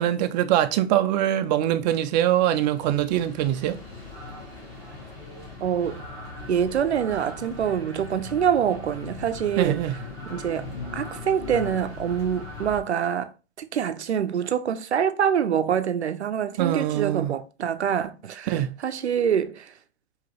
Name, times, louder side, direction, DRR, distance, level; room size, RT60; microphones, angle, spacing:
voice 1, 0.0-3.8 9.6-9.9 16.6-17.3 18.5-18.7, right 12 dB, 45° right, 0.5 m, -23 dB
sound 1, 2.1-12.8, left 3 dB, 10° left, 1.9 m, -39 dB
voice 2, 5.6-6.0 6.5-9.9 10.3-13.3 13.6-19.7, right 8 dB, 90° right, 0.6 m, -25 dB
4.8 x 2.9 x 3.0 m
hypercardioid pair, 115°, 32 cm